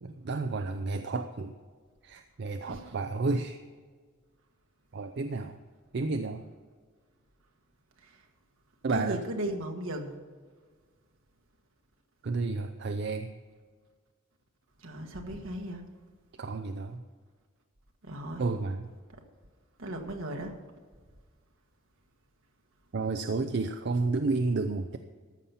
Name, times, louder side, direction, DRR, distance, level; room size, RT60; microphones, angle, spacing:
voice 1, 0.0-1.6 2.0-3.6 4.9-5.6 5.9-6.4 8.8-9.2 12.2-13.3 16.4-17.0 18.4-18.9 22.9-25.0, right 3 dB, 55° right, 7 dB, 0.5 m, -31 dB
voice 2, 8.9-10.1 14.8-15.8 18.0-18.5 19.8-20.5, right 1 dB, 75° right, 3 dB, 1.4 m, -36 dB
14.0 x 5.7 x 7.0 m, 1.5 s
head